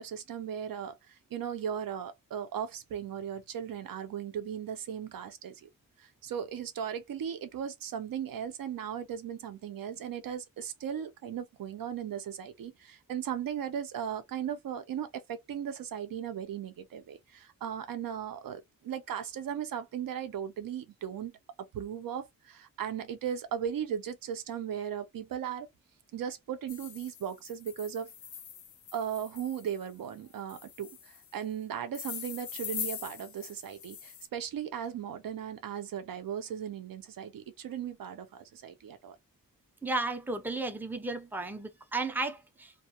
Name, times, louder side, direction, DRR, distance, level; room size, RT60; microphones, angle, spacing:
voice 1, 0.0-5.7 6.0-21.4 21.7-25.7 26.1-28.1 28.9-39.2, right 9 dB, 85° right, 0.6 m, -37 dB
sound 1, 26.7-29.8 30.5-31.3 31.9-34.3, left 8 dB, 65° left, 0.5 m, -43 dB
voice 2, 39.8-42.7, right 2 dB, 5° right, 0.4 m, -34 dB
2.3 x 2.1 x 2.8 m
wide cardioid pair, 140°, 33 cm